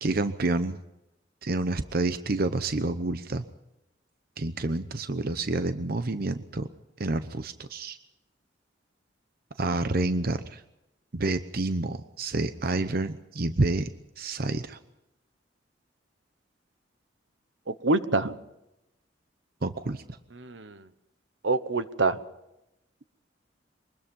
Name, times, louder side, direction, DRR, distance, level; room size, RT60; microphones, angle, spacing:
voice 1, 0.0-0.8 1.4-3.4 4.4-6.7 7.0-8.0 9.6-10.6 11.1-13.9 14.2-14.8 19.6-20.0, right 2 dB, 55° right, 11 dB, 0.9 m, -28 dB
voice 2, 17.7-18.4 20.4-20.8 21.4-22.2, right 3 dB, 80° right, 13 dB, 1.1 m, -26 dB
24.0 x 20.0 x 5.5 m, 0.90 s
head